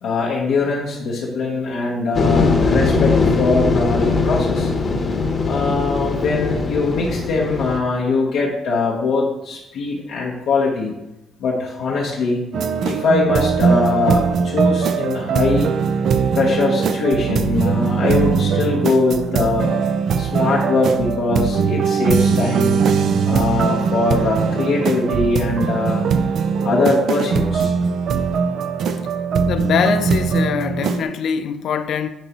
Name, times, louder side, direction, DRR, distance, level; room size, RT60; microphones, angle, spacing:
voice 1, 0.0-4.7 5.5-10.9 11.4-12.4 12.8-15.7 16.3-19.7 20.2-22.8 23.3-26.1 26.6-27.7, left 3 dB, 85° left, 1.1 m, -21 dB
sound 1, 2.1-7.8, left 4 dB, 40° left, 1.0 m, -20 dB
sound 2, 12.5-31.0, right 5 dB, 70° right, 0.5 m, -20 dB
voice 2, 29.5-32.1, left 8 dB, 70° left, 0.5 m, -23 dB
10.0 x 3.8 x 3.0 m
cardioid pair, 90°, 0 cm